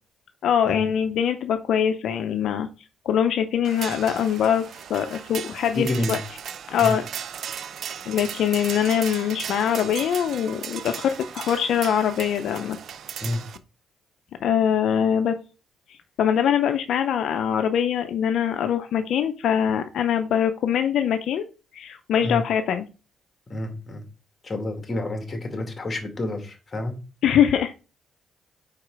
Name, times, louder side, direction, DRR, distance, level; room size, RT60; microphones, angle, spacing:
voice 1, 0.4-2.7 3.0-6.2 6.7-7.0 8.1-12.8 14.4-15.4 15.9-21.4 21.7-22.9 27.2-27.7, left 8 dB, 75° left, 7 dB, 0.6 m, -23 dB
sound 1, 3.6-13.6, right 8 dB, 65° right, 0.5 m, -36 dB
voice 2, 5.7-6.2 6.8-6.9 13.2-13.4 22.2-22.4 23.5-24.0 24.4-26.9, left 1 dB, 30° left, 4 dB, 2.0 m, -29 dB
4.9 x 4.8 x 4.7 m, 0.33 s
cardioid pair, 90°, 0 cm